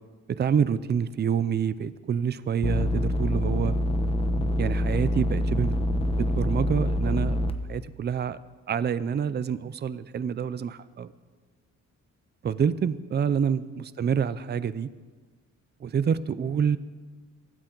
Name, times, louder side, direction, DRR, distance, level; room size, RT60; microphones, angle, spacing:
voice 1, 0.4-3.7 4.6-5.8 6.2-7.4 7.7-8.4 8.7-11.1 12.4-14.9 15.8-16.8, right 7 dB, 35° right, 15 dB, 0.5 m, -27 dB
sound 1, 2.6-7.5, equal, 20° left, 0.9 m, -25 dB
24.0 x 13.0 x 4.0 m, 1.4 s
cardioid pair, 135°, 30 cm